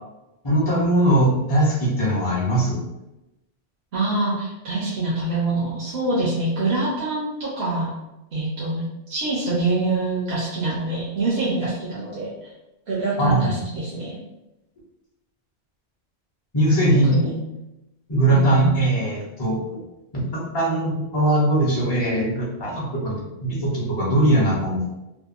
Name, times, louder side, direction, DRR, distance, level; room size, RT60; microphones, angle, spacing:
voice 1, 0.4-2.8 13.2-13.5 16.5-17.2 18.1-19.8 20.1-24.8, right 1 dB, 35° left, -5 dB, 0.4 m, -20 dB
voice 2, 3.9-7.9 8.3-12.3 12.9-14.2 16.9-17.4 18.3-18.7, right 2 dB, 70° right, -7 dB, 0.9 m, -25 dB
2.7 x 2.1 x 2.4 m, 0.94 s
omnidirectional pair, 1.1 m